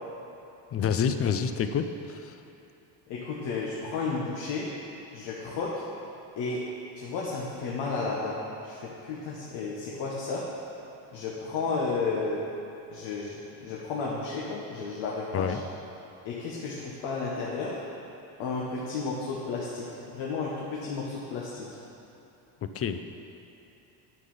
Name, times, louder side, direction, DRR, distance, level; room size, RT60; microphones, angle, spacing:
voice 1, 0.7-2.4 15.3-15.6 22.6-23.0, left 7 dB, 30° left, 8 dB, 0.5 m, -28 dB
voice 2, 3.1-4.7 5.1-5.8 6.4-6.6 6.9-8.4 8.6-10.4 11.1-12.4 12.9-15.6 16.2-17.8 18.4-21.7, left 4 dB, 70° left, -5 dB, 1.5 m, -32 dB
10.0 x 5.6 x 5.6 m, 3.0 s
cardioid pair, 110°, 46 cm